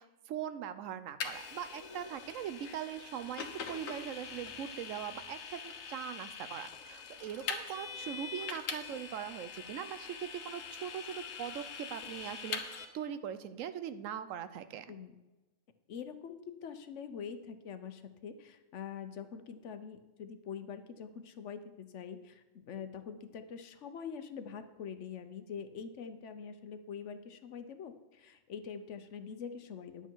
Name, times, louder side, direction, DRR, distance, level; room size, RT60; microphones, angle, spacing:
voice 1, 0.0-14.9, right 9 dB, 85° right, 12 dB, 1.0 m, -41 dB
Vehicle, 1.2-12.9, left 6 dB, 85° left, 1.3 m, -43 dB
voice 2, 15.9-30.1, left 7 dB, 70° left, 10 dB, 1.1 m, -44 dB
10.5 x 8.1 x 4.5 m, 1.1 s
omnidirectional pair, 1.3 m